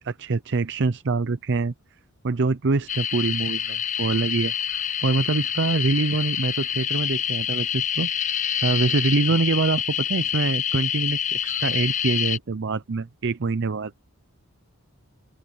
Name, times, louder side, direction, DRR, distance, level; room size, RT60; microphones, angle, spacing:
voice 1, 0.0-1.7 2.2-8.1 8.6-13.9, right 3 dB, 50° right, 0.6 m, -25 dB
sound 1, 2.9-12.4, left 9 dB, 35° left, 0.6 m, -27 dB
open air
head